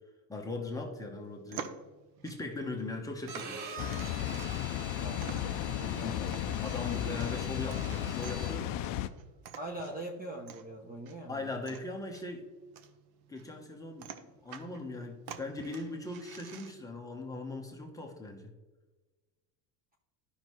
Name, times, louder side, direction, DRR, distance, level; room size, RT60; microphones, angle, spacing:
voice 1, 0.3-1.7 2.2-3.6 5.3-5.4 6.0-6.3 6.6-8.7 11.3-12.4 13.3-14.2 14.4-18.5, left 2 dB, 5° left, 0 dB, 0.9 m, -39 dB
sound 1, 1.2-17.0, right 8 dB, 50° right, 0.8 m, -50 dB
Bowed string instrument, 3.2-8.8, right 4 dB, 70° right, 1.4 m, -46 dB
Water, 3.8-9.1, left 12 dB, 45° left, 0.4 m, -34 dB
voice 2, 5.0-6.6 7.1-7.4 9.6-11.6, right 1 dB, 20° right, 2 dB, 0.7 m, -43 dB
11.5 x 5.6 x 3.1 m, 1.2 s
supercardioid pair, 135°, 49 cm